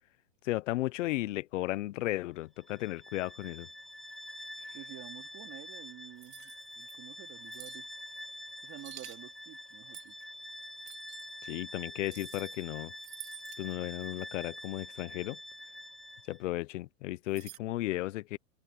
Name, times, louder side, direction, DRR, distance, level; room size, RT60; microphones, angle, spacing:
voice 1, 0.4-3.7 11.4-12.9 13.6-15.4 16.3-18.4, left 17 dB, 65° left, 0.9 m, -34 dB
Bowed string instrument, 2.6-16.4, left 1 dB, ahead, 1.6 m, -46 dB
voice 2, 4.5-8.0 8.6-10.3, right 17 dB, 35° right, 3.8 m, -50 dB
sound 1, 6.2-7.0 7.5-7.8 8.8-9.2 9.9-10.2 10.9-11.3 12.0-12.6 13.0-13.6 17.3-17.6, right 14 dB, 75° right, 2.6 m, -50 dB
supercardioid pair, 145°, 41 cm